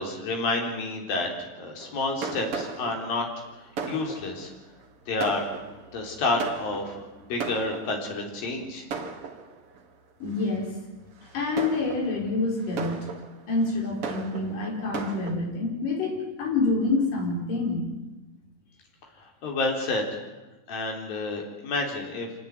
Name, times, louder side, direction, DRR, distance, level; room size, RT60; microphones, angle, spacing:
voice 1, 0.0-3.3 3.8-4.5 5.1-5.5 5.9-7.0 7.3-8.9 19.4-20.1 20.7-22.3, left 2 dB, 85° left, 2 dB, 5.6 m, -29 dB
Fireworks, 1.8-8.3 8.9-9.8 10.4-10.6 11.2-15.3, right 5 dB, 45° right, 2.6 m, -37 dB
voice 2, 10.2-10.7 11.3-13.1 13.5-18.0, left 3 dB, 70° left, 0 dB, 6.6 m, -27 dB
26.5 x 18.0 x 9.6 m, 1.0 s
omnidirectional pair, 4.0 m